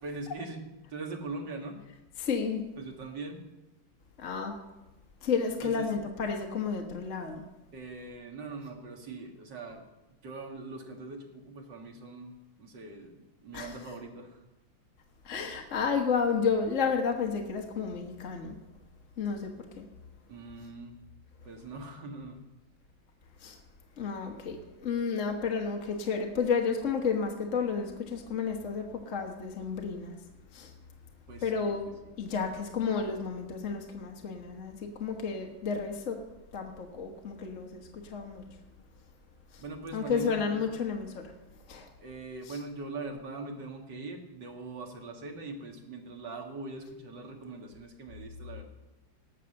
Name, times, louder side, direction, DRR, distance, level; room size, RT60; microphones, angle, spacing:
voice 1, 0.0-1.8 2.8-3.4 5.6-5.9 7.7-9.8 10.2-14.4 20.3-21.0 21.4-22.4 31.3-31.7 39.6-40.4 42.0-48.6, right 3 dB, 65° right, 2 dB, 2.4 m, -41 dB
voice 2, 2.2-2.6 4.2-4.5 5.2-7.4 13.5-13.8 15.2-18.6 19.2-19.8 23.4-23.6 24.0-30.1 30.5-30.7 31.4-36.2 36.5-38.4 39.5-39.6 39.9-41.3 41.7-41.9 42.5-42.6, left 5 dB, 45° left, 2 dB, 1.5 m, -31 dB
19.0 x 6.7 x 6.5 m, 1.0 s
omnidirectional pair, 2.1 m